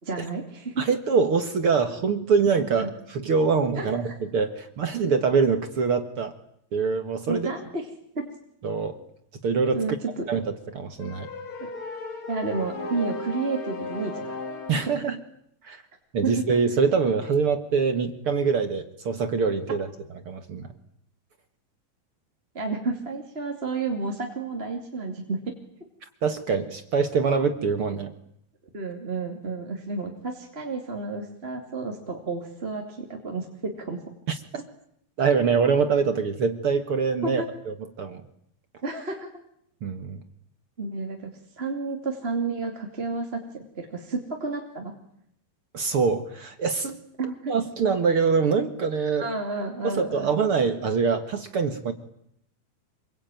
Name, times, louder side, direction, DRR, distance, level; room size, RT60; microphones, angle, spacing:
voice 1, 0.0-0.9 2.8-2.9 3.8-4.2 7.3-7.9 8.1-8.3 9.7-10.3 11.6-11.7 12.3-14.4 16.2-16.4 22.5-25.4 28.7-34.0 37.2-37.5 38.8-39.3 40.8-41.3 41.6-44.9 47.2-47.6 49.2-50.4, right 3 dB, 20° right, 2 dB, 2.3 m, -31 dB
voice 2, 0.8-6.3 6.7-7.5 8.6-9.0 9.4-9.8 10.3-11.3 14.7-15.2 15.6-15.8 16.1-19.9 20.3-20.7 26.2-28.1 34.3-34.4 35.2-38.2 39.8-40.2 45.7-47.0 47.5-49.3 49.8-51.9, right 5 dB, 50° right, 8 dB, 1.8 m, -24 dB
sound 1, 11.0-15.0, left 2 dB, 45° left, 4.1 m, -35 dB
27.0 x 23.0 x 9.2 m, 0.71 s
omnidirectional pair, 4.3 m